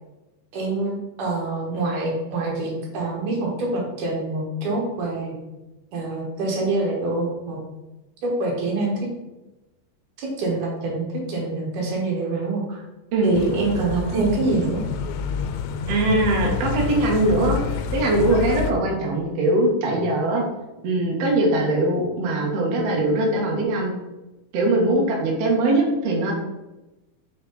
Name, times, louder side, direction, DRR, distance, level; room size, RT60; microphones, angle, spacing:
voice 1, 0.5-5.3 5.9-7.6 8.2-8.9 10.2-12.8 13.2-14.8, right 2 dB, 60° right, -2 dB, 2.4 m, -25 dB
voice 2, 13.1-13.7 15.9-17.6 17.9-20.4 20.8-23.9 24.5-26.3, right 2 dB, 85° right, -1 dB, 1.4 m, -21 dB
sound 1, 13.3-18.7, left 6 dB, 90° left, 2.9 m, -28 dB
6.4 x 4.6 x 4.0 m, 1.0 s
omnidirectional pair, 5.0 m